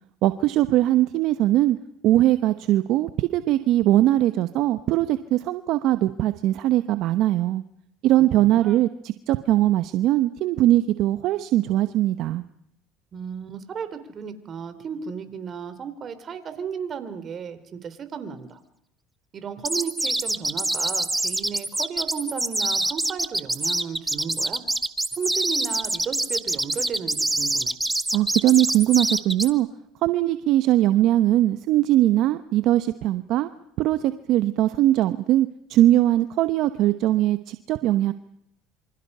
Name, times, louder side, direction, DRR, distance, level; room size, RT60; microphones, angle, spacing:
voice 1, 0.2-1.8 2.0-7.6 8.0-12.4 28.1-29.7 30.0-33.5 33.8-38.1, right 14 dB, 65° right, 11 dB, 0.9 m, -21 dB
voice 2, 8.0-8.8 13.1-18.6 19.3-24.6 25.1-27.8, right 7 dB, 45° right, 11 dB, 3.5 m, -34 dB
sound 1, 19.6-29.5, right 2 dB, 10° right, 1.4 m, -25 dB
27.5 x 25.5 x 5.6 m, 0.75 s
supercardioid pair, 85°, 0 cm